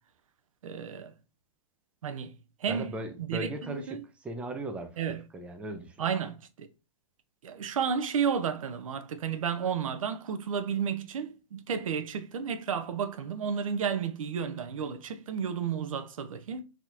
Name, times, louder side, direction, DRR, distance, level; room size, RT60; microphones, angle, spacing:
voice 1, 0.6-1.1 2.0-2.4 2.6-2.9 3.2-4.0 5.0-5.2 6.0-6.7 7.4-16.6, right 7 dB, 80° right, 0.6 m, -32 dB
voice 2, 2.7-6.0, right 1 dB, 5° right, 0.5 m, -38 dB
4.2 x 2.8 x 2.5 m
hypercardioid pair, 135°, 17 cm